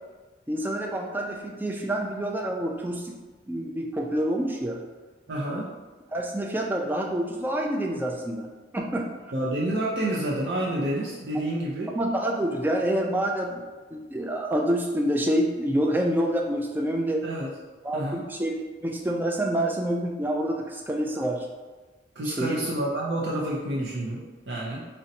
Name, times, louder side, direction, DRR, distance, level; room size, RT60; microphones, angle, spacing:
voice 1, 0.5-3.1 3.5-4.8 5.5-5.6 6.1-8.5 8.7-9.1 11.9-13.6 13.9-17.2 17.8-21.5 22.3-22.7, right 1 dB, 10° right, 0 dB, 0.3 m, -27 dB
voice 2, 5.3-5.7 9.3-11.9 17.2-17.5 17.9-18.2 22.2-24.9, right 1 dB, 70° right, -5 dB, 0.5 m, -29 dB
2.6 x 2.1 x 4.0 m, 1.3 s
head